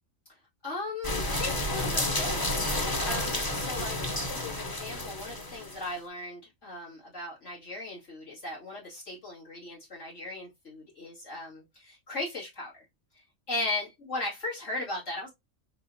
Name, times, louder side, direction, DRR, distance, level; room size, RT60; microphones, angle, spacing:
voice 1, 0.6-2.5 3.0-12.9 13.1-15.3, left 2 dB, 75° left, 2.6 m, -37 dB
sound 1, 1.0-5.9, left 1 dB, 25° left, 0.6 m, -31 dB
4.3 x 3.6 x 2.7 m
omnidirectional pair, 1.2 m